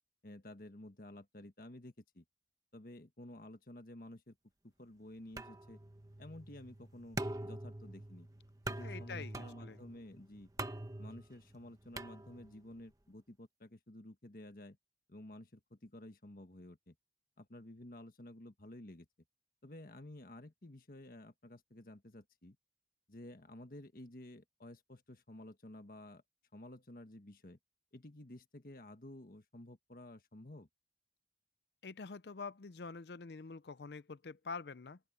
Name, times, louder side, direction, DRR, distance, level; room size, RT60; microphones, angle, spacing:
voice 1, 0.2-2.2 2.7-4.3 4.6-5.8 6.2-8.3 8.7-10.5 11.0-14.8 15.1-16.9 17.4-19.1 19.6-22.6 23.1-26.2 26.5-27.6 27.9-30.7, left 1 dB, 50° left, 1.5 m, -52 dB
sound 1, 5.4-12.7, right 2 dB, 20° right, 1.1 m, -45 dB
voice 2, 8.8-9.8 31.8-35.0, left 4 dB, 70° left, 0.6 m, -46 dB
open air
head